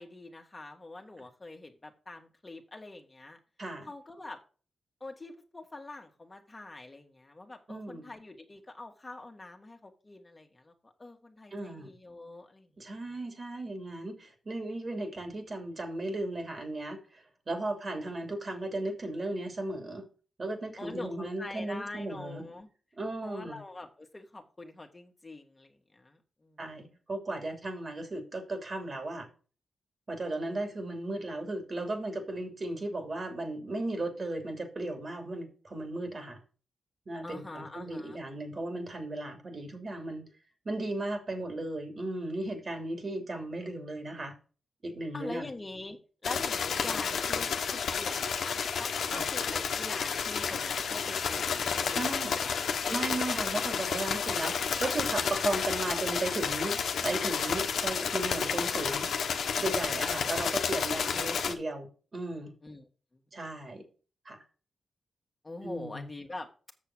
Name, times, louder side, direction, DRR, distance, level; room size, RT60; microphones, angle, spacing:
voice 1, 0.0-3.4 3.9-4.4 5.0-12.7 13.1-13.2 20.8-22.7 23.2-26.6 30.3-30.7 37.2-38.2 45.1-53.1 61.0-61.1 62.6-63.2 65.4-66.5, left 2 dB, 30° left, 3 dB, 1.8 m, -45 dB
voice 2, 3.6-3.9 7.7-8.1 11.5-11.9 12.8-20.1 20.4-22.4 23.0-23.6 26.6-29.3 30.1-36.4 37.1-40.2 40.6-44.3 44.8-45.5 46.3-46.4 49.1-49.2 51.9-52.3 52.9-59.1 59.6-62.5 63.3-63.8 64.2-64.4 65.6-66.1, right 2 dB, 45° right, 5 dB, 3.0 m, -36 dB
sound 1, 46.2-61.5, left 6 dB, 75° left, 1.1 m, -31 dB
7.5 x 6.7 x 6.1 m, 0.38 s
cardioid pair, 60°, 0 cm